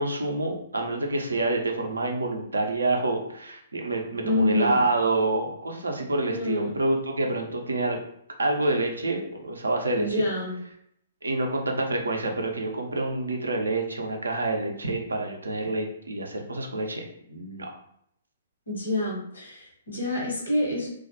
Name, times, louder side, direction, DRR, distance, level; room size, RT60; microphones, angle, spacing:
voice 1, 0.0-8.0 8.4-10.2 11.2-17.0 17.3-17.7, right 2 dB, 75° right, 2 dB, 0.4 m, -27 dB
voice 2, 4.2-4.8 6.3-6.7 10.0-10.5 18.7-20.9, left 1 dB, 75° left, -2 dB, 0.9 m, -27 dB
2.2 x 2.1 x 2.7 m, 0.70 s
figure-of-eight pair, 120°, 0 cm